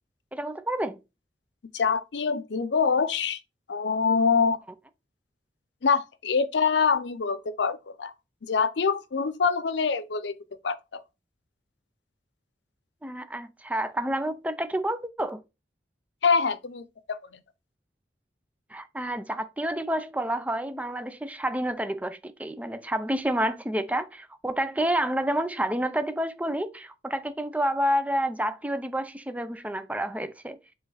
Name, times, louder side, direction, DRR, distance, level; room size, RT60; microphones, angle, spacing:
voice 1, 0.3-1.0 13.0-15.4 18.7-30.6, right 1 dB, 10° right, 0.5 m, -29 dB
voice 2, 1.7-3.4 3.7-4.6 5.8-8.1 8.5-10.4 10.6-11.0 16.2-17.2, left 5 dB, 90° left, 0.6 m, -25 dB
7.7 x 3.1 x 4.0 m
head